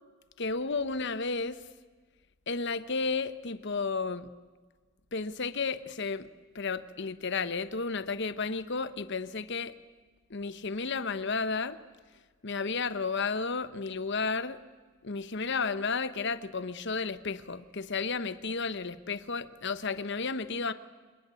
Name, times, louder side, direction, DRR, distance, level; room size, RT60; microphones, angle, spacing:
voice 1, 0.4-1.6 2.5-4.3 5.1-6.3 6.5-9.7 10.3-11.8 12.4-14.6 15.0-20.7, left 4 dB, 55° left, 13 dB, 1.0 m, -32 dB
26.5 x 22.0 x 8.4 m, 1.4 s
head